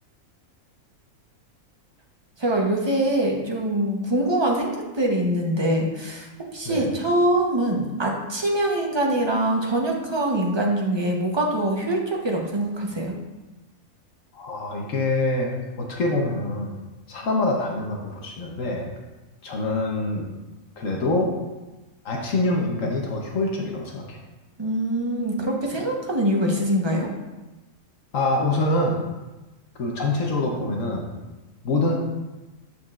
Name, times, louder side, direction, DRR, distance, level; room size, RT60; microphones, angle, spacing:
voice 1, 2.4-13.2 24.6-27.1, right 1 dB, 25° right, -1 dB, 0.7 m, -24 dB
voice 2, 14.3-15.5 15.8-16.8 17.1-18.9 19.4-20.3 20.8-21.3 22.0-24.2 28.1-29.0 29.8-31.1 31.6-31.9, left 2 dB, 65° left, 0 dB, 1.2 m, -25 dB
7.2 x 6.7 x 2.4 m, 1.1 s
omnidirectional pair, 1.5 m